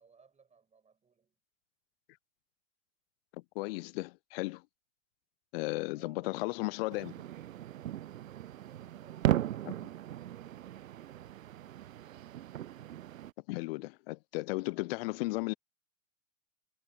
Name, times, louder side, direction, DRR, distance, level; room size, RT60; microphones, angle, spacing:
voice 1, 0.0-1.4 5.9-7.0 8.4-10.4 14.5-14.8, right 5 dB, 15° right, 6.8 m, -64 dB
voice 2, 3.5-4.6 5.5-7.1 13.5-15.5, left 22 dB, 50° left, 0.7 m, -35 dB
sound 1, 6.9-13.3, right 12 dB, 80° right, 0.5 m, -37 dB
figure-of-eight pair, 95°, 39 cm